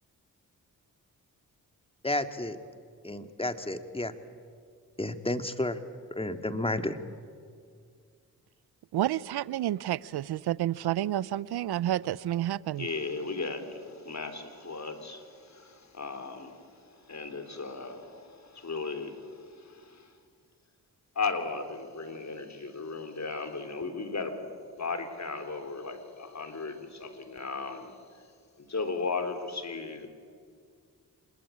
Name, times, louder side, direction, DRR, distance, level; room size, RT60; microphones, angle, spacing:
voice 1, 2.0-2.6 3.0-4.1 5.0-5.8 6.2-7.0, left 1 dB, 15° left, 8 dB, 2.1 m, -31 dB
voice 2, 8.9-12.9, right 13 dB, 85° right, 21 dB, 0.7 m, -30 dB
voice 3, 12.8-20.1 21.2-24.4 24.8-27.9 28.6-30.1, left 4 dB, 45° left, 8 dB, 3.7 m, -36 dB
27.0 x 21.0 x 8.6 m, 2.1 s
supercardioid pair, 45°, 38 cm